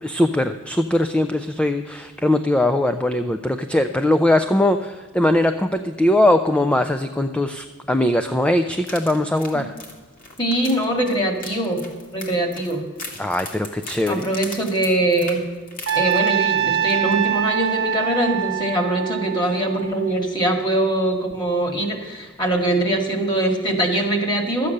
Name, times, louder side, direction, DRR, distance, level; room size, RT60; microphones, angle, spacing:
voice 1, 0.0-9.7 13.2-14.2, left 1 dB, 5° left, 8 dB, 0.4 m, -20 dB
sound 1, 8.8-16.6 16.9-17.1 17.5-17.6, left 2 dB, 40° left, 2.0 m, -39 dB
voice 2, 10.4-11.8 12.1-12.8 14.1-15.4 15.9-24.7, right 1 dB, 20° left, 3 dB, 1.8 m, -22 dB
Trumpet, 15.9-20.1, right 9 dB, 60° right, 1.2 m, -24 dB
12.5 x 8.5 x 6.5 m, 1.5 s
head